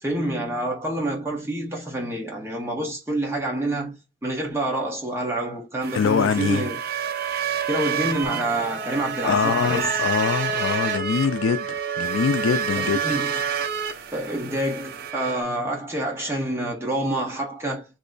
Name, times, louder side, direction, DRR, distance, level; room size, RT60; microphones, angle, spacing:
voice 1, 0.0-4.0 4.2-6.8 7.7-9.9 12.8-13.4 14.1-17.9, right 1 dB, 15° right, 1.0 m, -27 dB
sound 1, 5.8-15.4, right 7 dB, 50° right, 0.4 m, -28 dB
voice 2, 5.9-6.7 9.2-13.0, left 6 dB, 85° left, 0.4 m, -23 dB
3.0 x 2.1 x 3.8 m
head